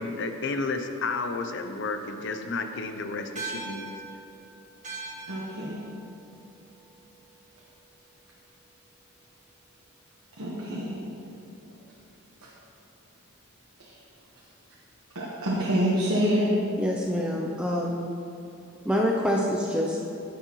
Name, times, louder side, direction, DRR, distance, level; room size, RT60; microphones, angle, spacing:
voice 1, 0.0-3.9, left 3 dB, 55° left, 7 dB, 0.6 m, -31 dB
sound 1, 3.4-8.0, right 3 dB, 35° right, 1.5 m, -42 dB
voice 2, 5.3-5.8 10.4-11.0 13.8-14.0 15.1-16.5, equal, 70° right, -6 dB, 1.2 m, -26 dB
voice 3, 16.8-18.1 18.8-20.0, equal, 5° right, -2 dB, 0.5 m, -26 dB
9.7 x 9.4 x 3.1 m, 2.8 s
head